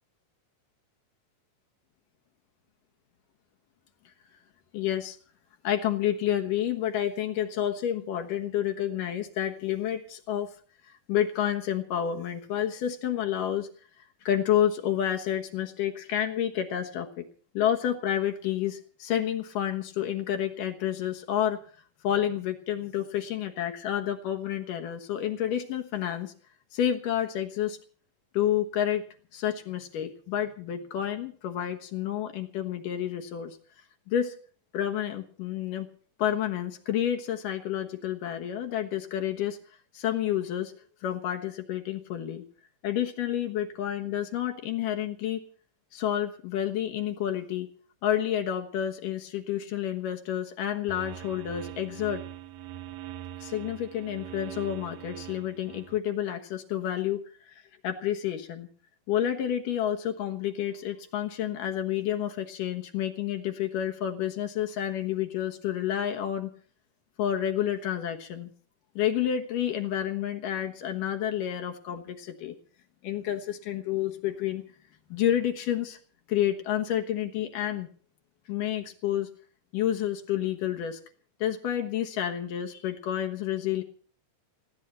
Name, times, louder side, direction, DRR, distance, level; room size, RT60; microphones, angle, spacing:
voice 1, 4.7-5.2 5.6-10.5 10.8-13.7 14.2-17.3 17.5-21.6 22.0-26.3 26.7-27.8 28.3-29.0 29.3-33.6 34.1-34.4 34.7-35.9 36.2-39.6 39.9-40.7 41.0-42.4 42.8-45.4 45.9-47.7 48.0-52.2 53.4-58.7 59.1-66.5 67.2-68.5 69.0-72.6 73.0-74.6 75.1-76.0 76.3-77.9 78.5-79.3 79.7-81.0 81.4-83.8, left 10 dB, 85° left, 4 dB, 2.9 m, -29 dB
sound 1, 50.9-56.0, right 13 dB, 70° right, 1.8 m, -42 dB
21.0 x 15.5 x 4.3 m, 0.43 s
omnidirectional pair, 3.7 m